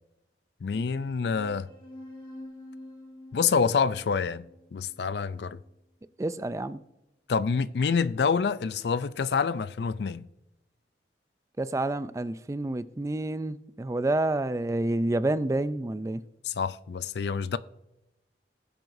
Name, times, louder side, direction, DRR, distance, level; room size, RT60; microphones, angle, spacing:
voice 1, 0.6-1.7 3.3-4.4 4.7-5.6 7.3-10.3 16.4-17.6, left 5 dB, 65° left, 0.4 m, -27 dB
sound 1, 0.7-5.7, left 1 dB, 30° left, 2.9 m, -48 dB
voice 2, 6.2-6.8 11.6-16.2, right 2 dB, 15° right, 0.3 m, -29 dB
19.0 x 7.6 x 2.6 m
head